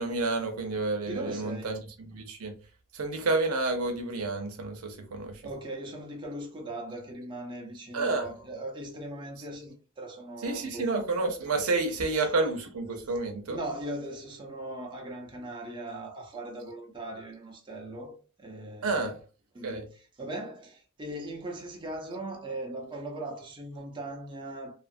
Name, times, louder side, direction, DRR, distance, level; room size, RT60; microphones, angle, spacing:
voice 1, 0.0-2.5 2.9-5.4 7.9-8.3 10.4-13.6 18.8-19.1 19.6-19.8, right 3 dB, 85° right, 0.6 m, -30 dB
voice 2, 1.1-1.8 5.4-11.0 11.6-11.7 12.1-12.3 12.9-13.0 13.5-19.1 19.5-24.8, right 1 dB, 20° right, 0.6 m, -39 dB
2.6 x 2.4 x 2.5 m
head